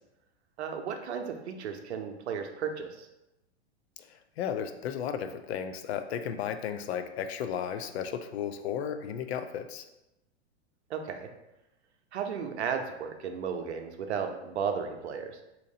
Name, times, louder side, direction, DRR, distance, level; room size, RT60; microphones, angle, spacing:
voice 1, 0.6-3.1 10.9-11.3 12.1-15.4, right 6 dB, 85° right, 5 dB, 0.6 m, -34 dB
voice 2, 4.0-9.8, left 8 dB, 75° left, 9 dB, 0.5 m, -34 dB
3.8 x 2.8 x 2.7 m, 0.93 s
hypercardioid pair, 125°, 33 cm